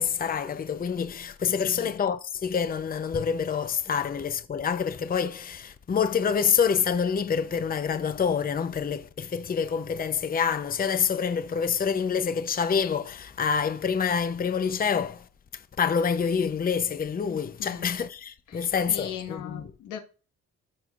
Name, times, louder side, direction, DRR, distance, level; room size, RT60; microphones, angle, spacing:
voice 1, 0.0-15.2 15.5-19.7, left 6 dB, 30° left, 0.7 m, -27 dB
voice 2, 17.6-17.9 18.5-18.6 18.9-20.0, left 9 dB, 85° left, 1.6 m, -38 dB
14.0 x 5.6 x 2.5 m
cardioid pair, 90°, 30 cm